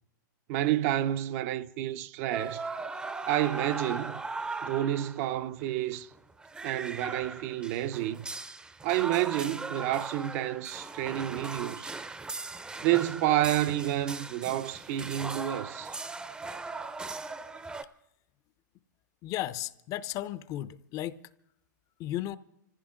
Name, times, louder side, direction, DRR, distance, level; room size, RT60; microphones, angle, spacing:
voice 1, 0.5-2.6 3.3-4.2 4.6-6.1 6.6-8.3 8.8-11.9 12.8-15.9, right 13 dB, 50° right, 0.6 m, -29 dB
sound 1, 2.3-5.3 5.6-5.7 5.9-17.8, right 3 dB, 10° right, 0.6 m, -39 dB
voice 2, 19.2-21.2 22.0-22.4, left 13 dB, 35° left, 0.6 m, -34 dB
26.0 x 15.0 x 3.7 m
hypercardioid pair, 130°, 10 cm